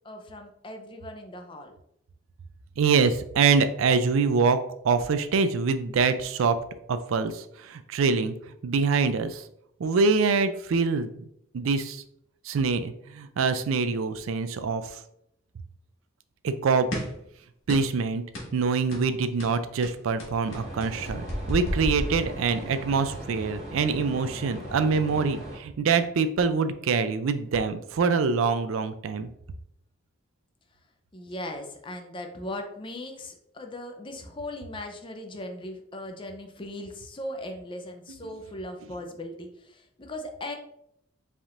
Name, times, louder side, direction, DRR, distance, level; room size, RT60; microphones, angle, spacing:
voice 1, 0.0-1.7 31.1-40.5, left 1 dB, 25° left, 4 dB, 0.5 m, -38 dB
voice 2, 2.8-4.6 4.8-6.6 6.9-8.3 8.6-9.4 9.8-11.3 11.5-12.0 12.4-15.0 16.4-16.9 17.7-18.2 18.5-29.3, right 5 dB, 75° right, 11 dB, 0.4 m, -25 dB
sound 1, 16.9-17.2 17.7-18.0 18.3-18.6 18.9-19.1 19.4-22.7, left 1 dB, 65° left, 1.6 m, -33 dB
sound 2, 20.4-25.6, equal, 30° right, 1.7 m, -39 dB
5.0 x 3.5 x 2.5 m, 0.74 s
head